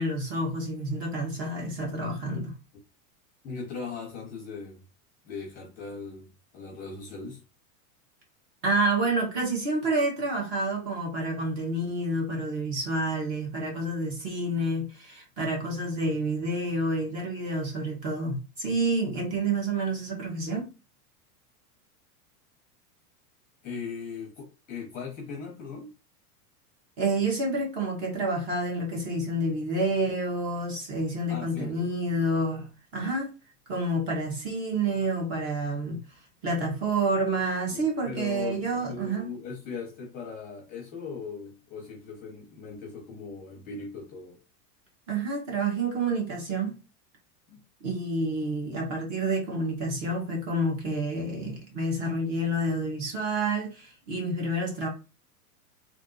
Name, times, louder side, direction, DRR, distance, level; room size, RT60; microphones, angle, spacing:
voice 1, 0.0-2.5 8.6-20.7 27.0-33.3 33.7-36.0 36.4-39.3 45.1-46.8 47.8-54.9, right 2 dB, 35° right, 1.9 m, -29 dB
voice 2, 3.4-4.8 5.2-7.4 23.6-25.9 31.3-31.9 37.7-38.6 38.9-44.4 47.5-47.6, left 5 dB, 20° left, 0.8 m, -39 dB
3.5 x 3.0 x 4.0 m
supercardioid pair, 165°, 46 cm